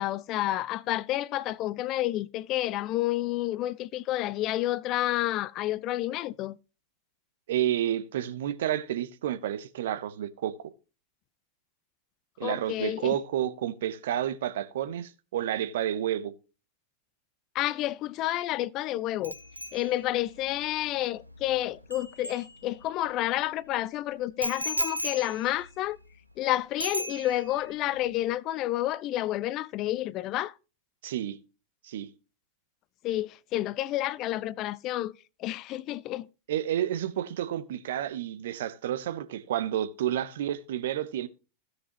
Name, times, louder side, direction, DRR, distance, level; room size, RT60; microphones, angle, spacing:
voice 1, 0.0-6.6 12.4-13.2 17.5-19.3 19.7-26.0 26.4-30.5 33.0-35.1 35.4-36.3, left 15 dB, 35° left, 0.4 m, -30 dB
voice 2, 7.5-10.5 12.4-16.3 31.0-31.4 31.8-32.1 36.5-41.3, right 11 dB, 55° right, 0.9 m, -30 dB
Bicycle bell, 19.2-23.1 24.4-26.4 26.8-27.7 27.9-28.2, equal, 90° right, 1.0 m, -37 dB
16.0 x 6.5 x 2.9 m
figure-of-eight pair, 90°, 0 cm